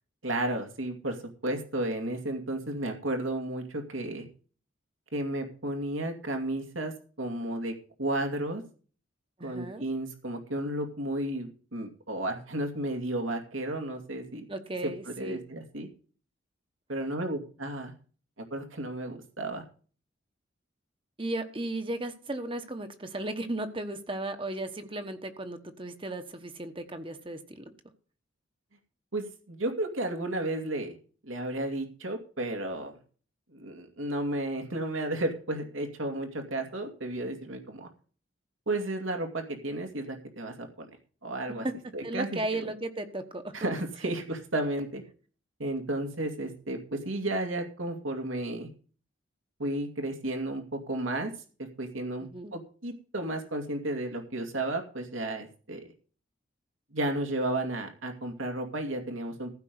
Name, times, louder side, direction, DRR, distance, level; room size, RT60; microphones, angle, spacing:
voice 1, 0.2-1.2 1.4-4.3 5.1-7.7 8.0-8.6 9.4-14.4 15.1-15.9 16.9-17.9 18.5-19.6 29.1-31.0 31.2-32.9 33.5-37.9 38.7-40.9 41.2-41.7 41.9-42.7 43.5-45.0 45.6-48.7 49.6-51.3 51.6-55.8 56.9-59.5, right 1 dB, 85° right, 4 dB, 2.5 m, -33 dB
voice 2, 9.4-9.8 14.5-15.4 21.2-27.7 42.0-43.6 52.2-52.6, right 1 dB, 25° right, 8 dB, 1.1 m, -35 dB
15.0 x 5.4 x 7.9 m, 0.39 s
head